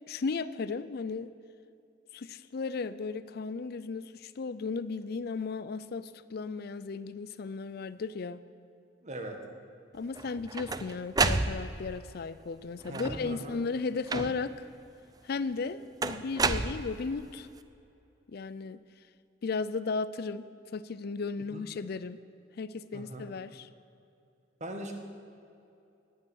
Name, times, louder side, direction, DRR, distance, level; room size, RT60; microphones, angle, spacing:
voice 1, 0.1-1.3 2.1-8.4 9.9-14.7 15.2-17.5 18.3-18.8 19.4-22.2 22.6-23.7, left 4 dB, 55° left, 15 dB, 0.4 m, -35 dB
voice 2, 9.0-9.4 12.9-13.6 21.5-21.7 22.9-23.3 24.6-24.9, right 1 dB, 40° right, 3 dB, 1.7 m, -40 dB
sound 1, 10.2-12.0 12.8-13.4 14.1-14.6 16.0-17.3, right 3 dB, 20° right, 0.5 m, -30 dB
17.0 x 10.0 x 6.4 m, 2.7 s
head